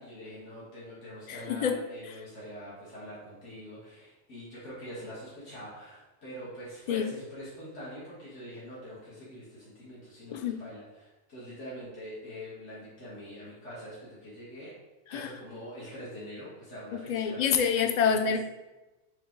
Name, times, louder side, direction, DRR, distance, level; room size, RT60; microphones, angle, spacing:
voice 1, 0.0-14.7 15.1-18.1, equal, 75° left, -9 dB, 2.3 m, -44 dB
voice 2, 1.3-1.8 6.9-7.1 10.3-10.6 15.1-15.3 16.9-18.4, left 7 dB, 50° left, 7 dB, 0.5 m, -27 dB
7.1 x 3.5 x 4.0 m, 1.1 s
omnidirectional pair, 1.2 m